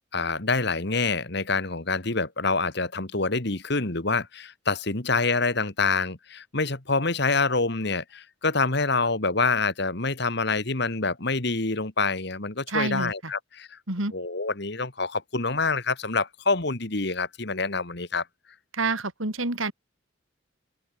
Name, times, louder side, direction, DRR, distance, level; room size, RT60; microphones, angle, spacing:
voice 1, 0.1-13.8 14.1-18.2, left 3 dB, 55° left, 2.1 m, -26 dB
voice 2, 12.7-13.3 13.9-14.1 18.7-19.7, right 3 dB, 80° right, 4.1 m, -28 dB
open air
head